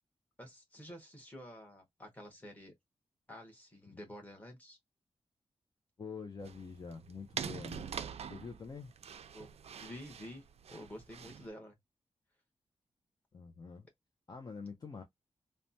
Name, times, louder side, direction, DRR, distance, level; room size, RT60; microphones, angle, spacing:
voice 1, 0.4-2.7 3.3-4.8 9.3-9.5 9.8-11.8, left 1 dB, 15° left, 1.3 m, -50 dB
voice 2, 6.0-7.9 8.3-8.9 13.3-13.9 14.3-15.0, left 5 dB, 40° left, 0.5 m, -46 dB
sound 1, 6.4-11.5, right 7 dB, 75° right, 0.4 m, -45 dB
3.2 x 2.1 x 2.6 m
wide cardioid pair, 135°, 11 cm